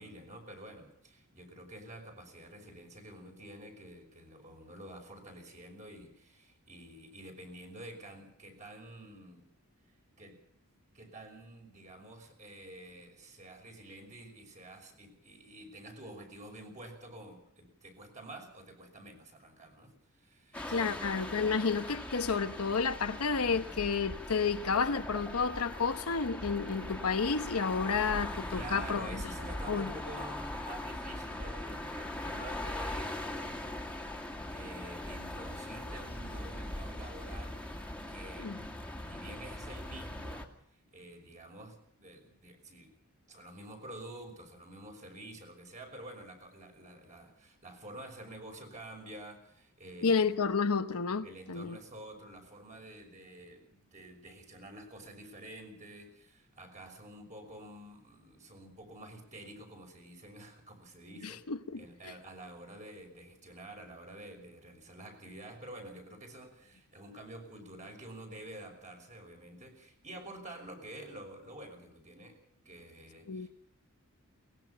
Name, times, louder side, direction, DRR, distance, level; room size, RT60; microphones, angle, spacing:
voice 1, 0.0-9.5 10.2-10.4 10.9-21.5 28.5-33.2 33.7-33.9 34.3-38.5 39.0-42.9 43.3-50.2 51.2-61.4 61.8-72.4 72.6-73.5, right 1 dB, 35° right, 6.0 m, -49 dB
sound 1, 20.5-40.5, left 1 dB, 5° left, 2.2 m, -41 dB
voice 2, 20.7-29.1 29.7-29.9 38.4-38.6 50.0-51.8 61.2-62.1 73.3-73.5, left 5 dB, 75° left, 1.0 m, -31 dB
22.5 x 20.0 x 5.8 m
head